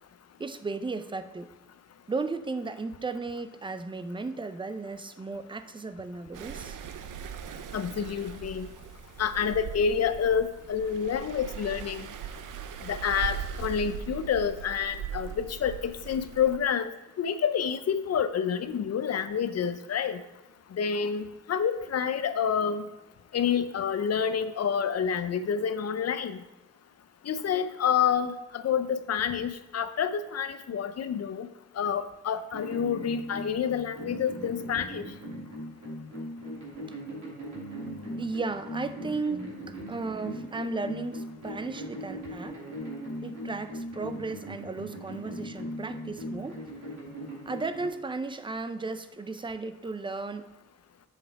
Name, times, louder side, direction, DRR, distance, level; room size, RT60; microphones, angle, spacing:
voice 1, 0.4-1.5 2.1-6.8 38.2-42.6 43.2-46.6 47.5-50.5, right 3 dB, 15° right, 11 dB, 0.4 m, -35 dB
sound 1, 6.3-16.6, right 8 dB, 90° right, 0.6 m, -40 dB
voice 2, 7.7-8.7 9.2-12.1 12.8-16.9 17.2-20.2 20.7-22.8 23.3-26.4 27.2-31.5 31.8-35.0, left 7 dB, 55° left, 12 dB, 0.6 m, -28 dB
sound 2, 32.5-47.9, equal, 70° right, 3.0 m, -39 dB
7.2 x 5.7 x 4.5 m, 1.0 s
wide cardioid pair, 130°, 30 cm